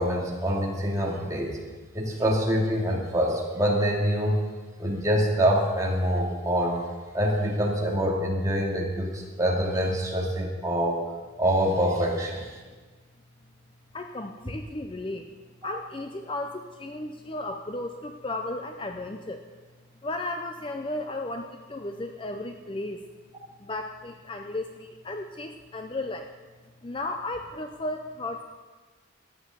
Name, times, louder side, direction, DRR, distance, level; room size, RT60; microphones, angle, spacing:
voice 1, 0.0-1.6 1.9-4.4 4.8-6.8 7.1-11.0 11.4-12.6 15.6-15.7, equal, 15° right, -3 dB, 2.3 m, -25 dB
voice 2, 13.9-15.3 15.6-19.5 20.0-23.0 23.6-26.3 26.8-28.4, left 2 dB, 25° left, 5 dB, 0.6 m, -34 dB
13.0 x 9.6 x 6.9 m, 1.4 s
head